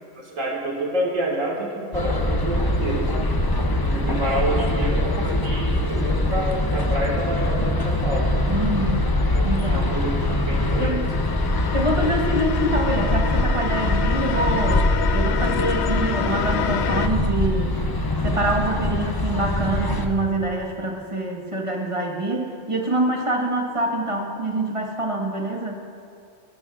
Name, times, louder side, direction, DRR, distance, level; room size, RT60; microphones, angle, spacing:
voice 1, 0.2-3.4 3.9-8.3 9.3-10.9, right 1 dB, 75° right, -2 dB, 2.2 m, -28 dB
sound 1, 1.9-20.1, left 1 dB, 35° left, 0.3 m, -23 dB
voice 2, 8.5-9.1 9.4-9.9 10.8-11.2 11.7-14.9 15.1-17.8 18.2-25.8, right 1 dB, 25° right, 0 dB, 1.3 m, -25 dB
sound 2, 9.4-17.1, left 8 dB, 65° left, 0.8 m, -29 dB
17.5 x 12.5 x 2.4 m, 2.5 s
omnidirectional pair, 1.4 m